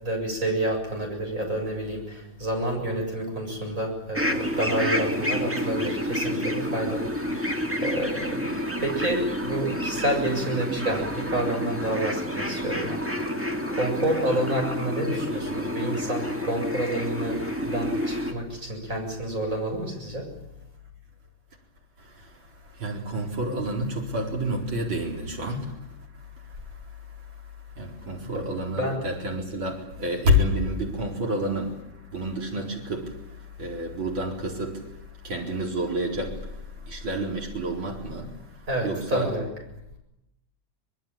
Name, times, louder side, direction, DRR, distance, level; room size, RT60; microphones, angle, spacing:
voice 1, 0.0-8.5 8.8-13.4 13.7-20.3 28.2-28.4 28.7-29.0 38.7-39.5, right 1 dB, 40° right, 7.7 m, -29 dB
sound 1, 4.1-18.3, equal, 5° right, 2.0 m, -29 dB
voice 2, 22.0-39.4, equal, 80° right, 5.1 m, -30 dB
24.5 x 21.5 x 8.9 m
omnidirectional pair, 2.1 m